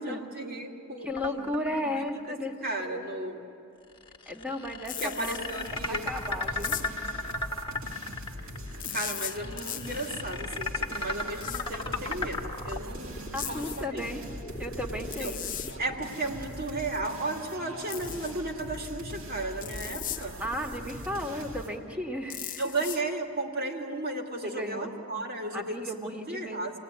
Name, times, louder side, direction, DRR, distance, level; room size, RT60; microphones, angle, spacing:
voice 1, 0.0-1.5 2.3-2.4 2.6-3.5 5.0-6.0 8.9-14.0 15.2-15.3 15.8-20.3 22.6-26.7, right 2 dB, 45° right, 1 dB, 2.4 m, -34 dB
voice 2, 1.0-3.1 4.3-5.4 5.9-6.8 13.3-14.2 14.6-15.4 20.4-22.6 24.4-24.9 25.5-26.7, left 1 dB, 5° right, 2 dB, 1.9 m, -34 dB
sound 1, 1.2-2.2 2.6-2.7 3.9-16.9 18.2-21.0, left 2 dB, 25° left, 1.5 m, -37 dB
sound 2, 4.9-5.4 6.6-7.1 8.8-10.1 11.4-11.7 13.4-13.9 15.1-15.8 17.9-18.3 19.6-20.3 22.3-23.0, left 12 dB, 40° left, 0.7 m, -37 dB
sound 3, 5.3-21.8, equal, 65° right, 2.6 m, -42 dB
27.5 x 19.0 x 9.6 m, 2.9 s
head